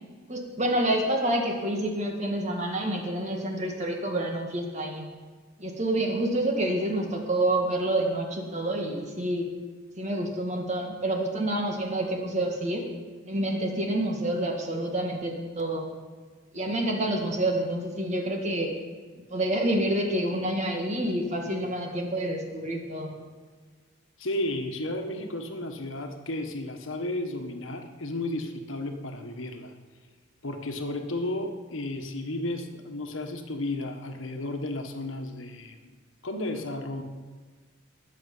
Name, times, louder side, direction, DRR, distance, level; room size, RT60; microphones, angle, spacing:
voice 1, 0.3-5.1 5.6-9.4 10.0-12.8 13.2-15.9 16.5-18.7 19.2-23.2, right 1 dB, 35° right, 1 dB, 1.9 m, -28 dB
voice 2, 24.2-29.7 30.4-35.9 36.2-37.0, left 1 dB, 80° left, 5 dB, 1.4 m, -33 dB
20.0 x 7.3 x 5.6 m, 1.4 s
head